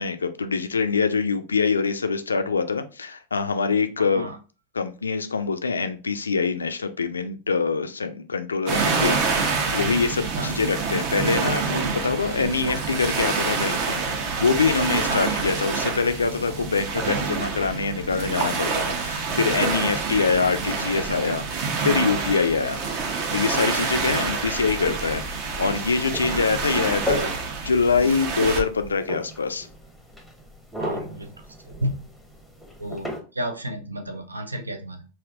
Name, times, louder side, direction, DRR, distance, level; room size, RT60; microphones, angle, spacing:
voice 1, 0.0-4.3 4.7-14.0 14.4-21.4 21.8-22.8 23.3-25.2 25.6-27.4 27.6-29.7, left 5 dB, 75° left, 9 dB, 0.3 m, -24 dB
voice 2, 4.0-4.4 10.4-10.5 15.1-15.5 24.1-24.4 30.8-31.3 31.6-32.0 32.8-35.1, right 1 dB, 80° right, 6 dB, 0.5 m, -32 dB
sound 1, 8.7-28.6, right 4 dB, 45° right, 0.7 m, -27 dB
sound 2, 24.2-33.2, left 1 dB, ahead, 0.8 m, -36 dB
3.4 x 2.5 x 2.4 m, 0.34 s
figure-of-eight pair, 90°, 0 cm